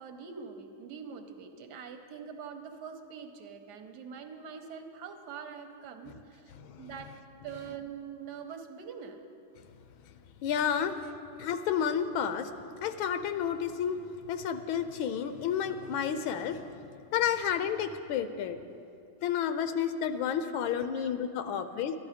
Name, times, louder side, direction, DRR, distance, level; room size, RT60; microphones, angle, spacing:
voice 1, 0.0-6.5 6.8-7.2 7.4-9.2 20.5-20.6 20.9-21.5, right 6 dB, 60° right, 6 dB, 1.2 m, -44 dB
voice 2, 6.5-6.9 10.4-11.0 11.4-12.5 12.8-14.0 14.3-16.8 17.1-18.6 19.2-21.9, left 8 dB, 80° left, 10 dB, 1.4 m, -31 dB
12.5 x 11.5 x 4.9 m, 2.6 s
omnidirectional pair, 2.2 m